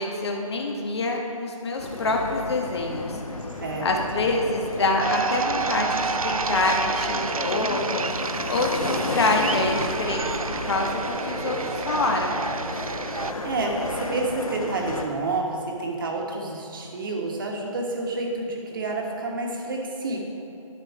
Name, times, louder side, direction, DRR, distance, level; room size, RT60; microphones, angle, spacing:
voice 1, 0.0-3.2 3.8-8.0 8.5-12.4, left 2 dB, 50° left, 1 dB, 1.2 m, -26 dB
sound 1, 1.8-15.0, left 2 dB, 80° left, 1.2 m, -33 dB
voice 2, 3.6-3.9 13.4-20.2, right 2 dB, 40° right, 0 dB, 1.4 m, -29 dB
sound 2, 5.0-13.3, right 4 dB, 80° right, 0.5 m, -30 dB
11.0 x 7.3 x 4.9 m, 2.9 s
figure-of-eight pair, 150°, 18 cm